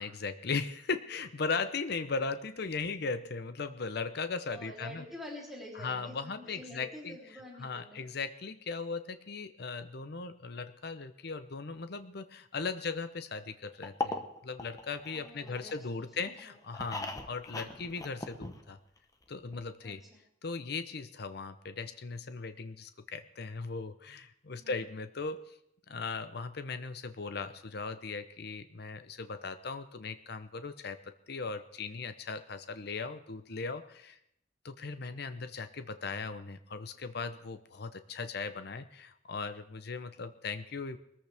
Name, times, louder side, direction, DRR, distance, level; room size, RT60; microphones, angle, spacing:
voice 1, 0.0-5.0 5.7-7.2 7.6-18.8 19.3-20.0 20.4-25.6 25.9-34.2 34.6-41.0, left 4 dB, 60° left, 10 dB, 0.8 m, -38 dB
voice 2, 4.5-8.1 15.1-16.5 17.6-17.8 19.8-20.2 24.6-24.8, left 1 dB, ahead, -4 dB, 3.4 m, -48 dB
sound 1, 13.8-15.9 16.3-19.0 19.2-19.3 19.5-19.6, left 2 dB, 20° left, 1.1 m, -39 dB
21.5 x 14.0 x 3.5 m, 0.74 s
head